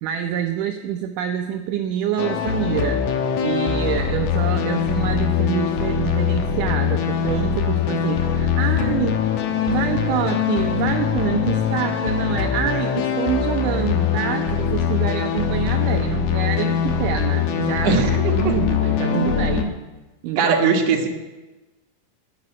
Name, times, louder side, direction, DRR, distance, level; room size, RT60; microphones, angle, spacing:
voice 1, 0.0-3.0 3.4-9.2 9.7-18.0 18.3-19.7 20.2-20.8, right 9 dB, 75° right, 5 dB, 2.2 m, -26 dB
sound 1, 2.2-19.6, left 8 dB, 70° left, 2.4 m, -22 dB
voice 2, 17.8-18.6 19.1-19.7 20.4-21.1, right 5 dB, 55° right, 1 dB, 2.5 m, -21 dB
10.5 x 9.7 x 9.5 m, 1.1 s
omnidirectional pair, 3.9 m